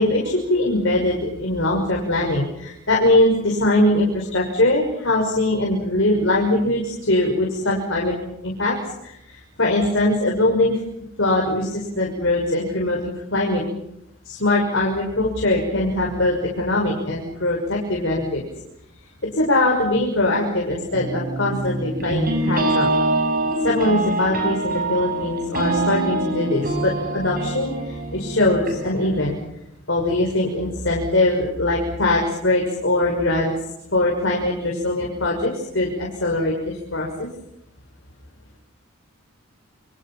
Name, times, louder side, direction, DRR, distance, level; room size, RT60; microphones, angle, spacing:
voice 1, 0.0-8.1 8.4-8.7 9.0-10.8 11.2-13.6 14.2-18.4 19.3-22.9 23.6-29.4 29.9-33.5 33.9-37.3, left 1 dB, 60° left, -1 dB, 6.0 m, -21 dB
sound 1, 20.9-29.3, right 2 dB, 40° right, 7.8 m, -25 dB
29.0 x 26.0 x 5.8 m, 0.81 s
head